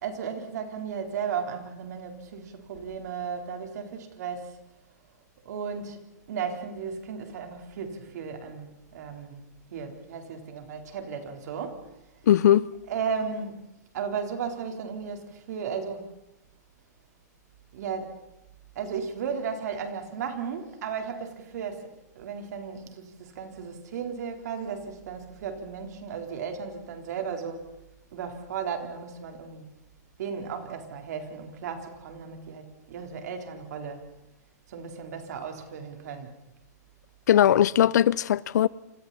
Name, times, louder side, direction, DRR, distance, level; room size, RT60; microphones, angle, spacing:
voice 1, 0.0-4.6 5.5-6.0 6.3-9.4 9.7-12.0 12.8-13.6 13.9-16.1 17.7-18.2 18.8-27.7 28.1-29.7 30.2-34.1 34.7-36.3, right 6 dB, 70° right, 4.0 m, -35 dB
voice 2, 12.3-12.7 37.3-38.7, left 11 dB, 75° left, 0.7 m, -19 dB
28.0 x 27.0 x 4.2 m
hypercardioid pair, 145°, 9 cm